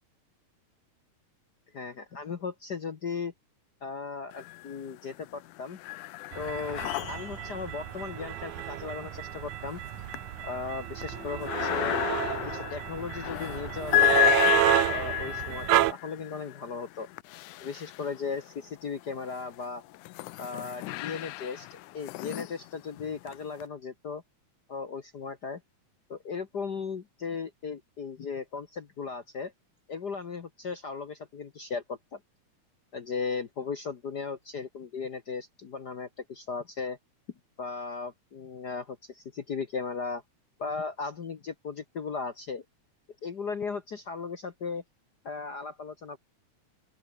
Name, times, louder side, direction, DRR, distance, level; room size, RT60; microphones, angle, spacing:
voice 1, 1.7-3.3 3.8-5.8 6.3-6.8 7.1-9.8 10.4-12.0 12.4-14.3 14.8-17.1 17.6-19.8 20.4-24.2 24.7-25.6 26.1-29.5 29.9-32.2 32.9-37.0 37.6-40.2 40.6-42.6 43.2-44.8 45.2-46.2, left 5 dB, 50° left, 1.3 m, -36 dB
sound 1, 4.3-5.0 5.3-18.5 19.2-23.6, left 18 dB, 85° left, 2.2 m, -32 dB
sound 2, 6.3-15.9, right 14 dB, 80° right, 2.4 m, -30 dB
open air
omnidirectional pair, 3.5 m